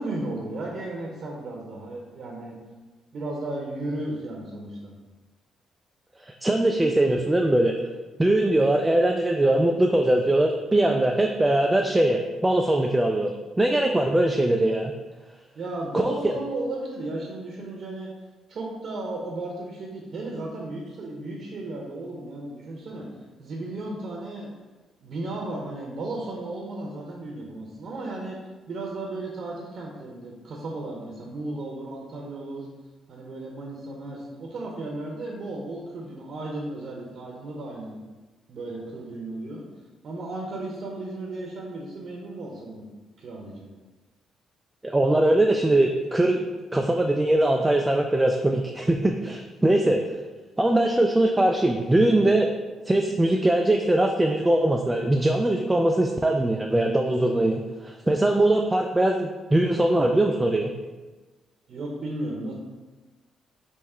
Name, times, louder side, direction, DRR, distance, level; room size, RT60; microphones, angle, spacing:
voice 1, 0.0-2.6 3.1-4.9 15.5-18.1 18.5-23.1 23.4-24.5 25.0-28.4 28.7-32.7 33.1-38.0 38.5-39.6 40.0-42.8 43.2-43.7 61.7-62.5, right 2 dB, 55° right, -2 dB, 0.8 m, -34 dB
voice 2, 6.2-7.8 8.2-13.3 13.6-14.9 15.9-16.3 44.8-46.4 46.7-50.0 50.6-52.5 52.9-60.7, right 1 dB, 15° right, 2 dB, 0.3 m, -21 dB
3.6 x 3.0 x 4.3 m, 1.2 s
cardioid pair, 90°, 0 cm